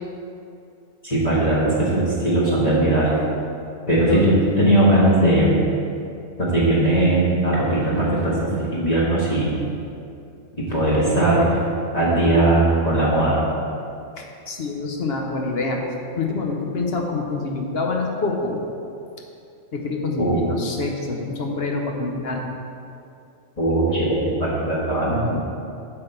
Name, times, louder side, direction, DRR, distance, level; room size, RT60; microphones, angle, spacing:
voice 1, 1.0-3.1 3.9-5.6 6.4-9.6 10.6-11.5 11.9-13.4 20.2-20.4 23.6-25.4, right 1 dB, 30° left, -8 dB, 1.5 m, -19 dB
voice 2, 4.0-4.8 14.2-15.8 16.2-18.6 19.7-22.4, left 3 dB, 55° left, 1 dB, 1.0 m, -26 dB
8.8 x 3.8 x 6.6 m, 2.6 s
omnidirectional pair, 1.3 m